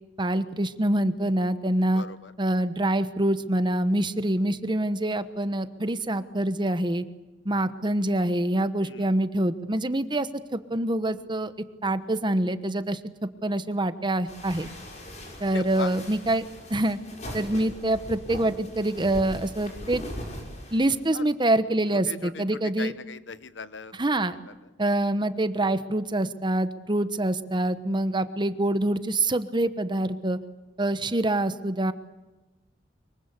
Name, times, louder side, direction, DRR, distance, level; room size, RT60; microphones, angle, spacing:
voice 1, 0.2-2.0 2.4-7.0 7.4-11.5 11.8-14.7 15.4-16.4 16.7-17.0 17.3-20.0 20.7-22.9 23.9-24.4 24.8-30.4 30.8-31.9, right 1 dB, 25° right, 12 dB, 1.1 m, -25 dB
voice 2, 1.9-2.3 8.8-9.1 15.5-15.9 21.1-21.2 21.9-22.4 22.8-23.9 24.2-24.5 28.1-28.3, left 4 dB, 90° left, 14 dB, 1.1 m, -39 dB
sound 1, 14.3-21.0, equal, 40° left, 5.9 m, -40 dB
24.5 x 23.0 x 8.3 m, 1.1 s
head